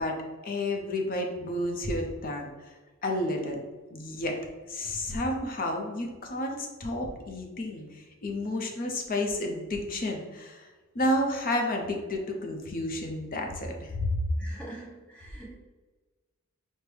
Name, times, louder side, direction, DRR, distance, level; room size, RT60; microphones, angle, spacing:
voice 1, 0.0-2.5 3.0-3.6 3.9-4.4 4.7-10.7 10.9-14.2, left 1 dB, 40° left, 2 dB, 0.6 m, -31 dB
voice 2, 14.4-15.5, right 1 dB, 5° left, -5 dB, 1.0 m, -44 dB
6.1 x 2.1 x 3.3 m, 1.3 s
head